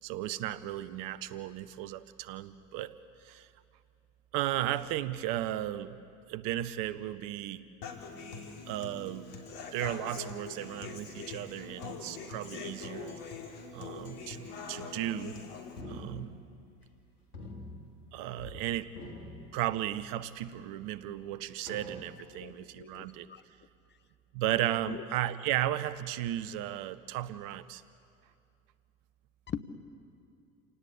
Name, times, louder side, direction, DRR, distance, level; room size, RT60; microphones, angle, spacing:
voice 1, 0.0-3.5 4.3-6.0 6.3-7.7 8.7-9.3 9.7-13.2 13.7-15.4 15.9-16.4 18.1-18.9 19.5-23.3 24.3-27.8, right 13 dB, 50° right, 15 dB, 1.0 m, -35 dB
Human voice / Acoustic guitar, 7.8-15.8, left 5 dB, 55° left, 3.7 m, -43 dB
sound 1, 15.8-17.0 17.3-18.6 18.9-20.2 20.8-20.9 21.7-22.5, left 1 dB, 85° left, 2.8 m, -46 dB
voice 2, 22.3-23.4 24.9-25.0 29.5-29.6, left 8 dB, 25° left, 11 dB, 1.2 m, -41 dB
28.5 x 18.0 x 8.7 m, 2.5 s
figure-of-eight pair, 75°, 43 cm